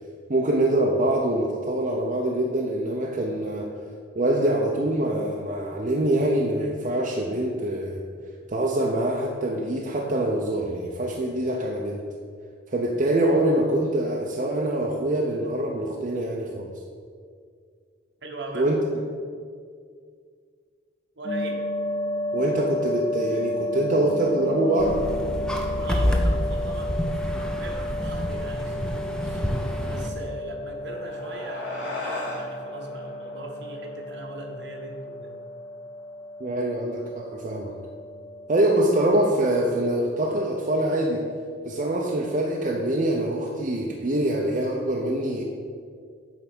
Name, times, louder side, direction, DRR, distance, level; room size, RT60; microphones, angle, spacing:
voice 1, 0.3-3.7 4.2-8.0 8.5-12.0 12.7-16.8 18.5-18.8 22.3-25.0 36.4-37.7 38.5-41.3 41.6-45.4, right 1 dB, 40° right, -1 dB, 0.6 m, -24 dB
voice 2, 18.2-18.7 21.2-21.6 25.8-35.4, right 2 dB, 65° right, 1 dB, 1.1 m, -39 dB
sound 1, 21.2-38.5, left 1 dB, 65° left, 1.1 m, -33 dB
sound 2, 24.8-30.1, equal, 5° left, 0.5 m, -28 dB
sound 3, 30.6-35.4, left 2 dB, 90° left, 1.9 m, -38 dB
8.9 x 3.4 x 6.0 m, 2.1 s
head